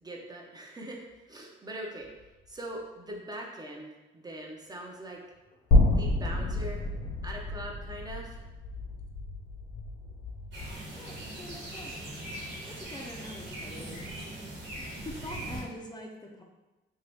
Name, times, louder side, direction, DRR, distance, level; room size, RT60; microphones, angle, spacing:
voice 1, 0.0-2.1 2.5-5.2 5.9-6.9 7.2-8.4, right 1 dB, 20° right, -1 dB, 0.6 m, -41 dB
sound 1, 2.0-2.6 4.7-4.8 5.3-10.8, left 4 dB, 50° left, 0.8 m, -44 dB
sound 2, 5.7-9.9, left 2 dB, 90° left, 1.0 m, -27 dB
sound 3, 10.5-15.6, right 1 dB, 65° right, 1.2 m, -40 dB
voice 2, 11.0-11.9 12.7-14.0 14.8-16.4, left 1 dB, 20° left, 1 dB, 0.5 m, -44 dB
2.9 x 2.8 x 3.4 m, 1.1 s
cardioid pair, 90°, 20 cm